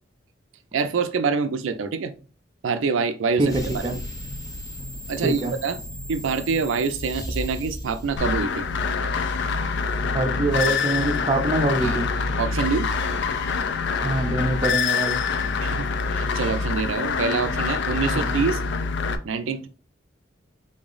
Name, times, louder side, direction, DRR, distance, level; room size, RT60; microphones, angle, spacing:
voice 1, 0.7-2.1 2.6-4.0 5.1-5.8 6.1-8.7 11.8-12.0 12.4-12.9 15.6-18.6 19.2-19.7, right 5 dB, 85° right, 0.4 m, -26 dB
sound 1, 3.4-8.9, equal, 20° left, 0.7 m, -35 dB
voice 2, 5.2-5.5 10.1-12.1 14.0-15.2 18.1-18.4, right 2 dB, 25° right, 0.5 m, -24 dB
sound 2, 8.2-19.2, left 5 dB, 60° left, 0.4 m, -25 dB
3.7 x 2.0 x 3.8 m
head